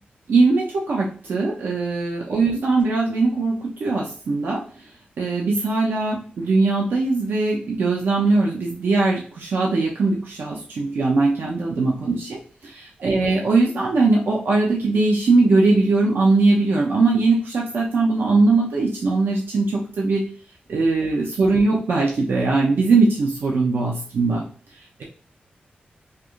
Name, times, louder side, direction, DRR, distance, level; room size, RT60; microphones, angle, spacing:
voice 1, 0.3-4.6 5.2-20.2 20.7-24.4, right 3 dB, 85° right, -2 dB, 0.7 m, -20 dB
4.6 x 2.6 x 2.4 m, 0.42 s
wide cardioid pair, 95°, 3 cm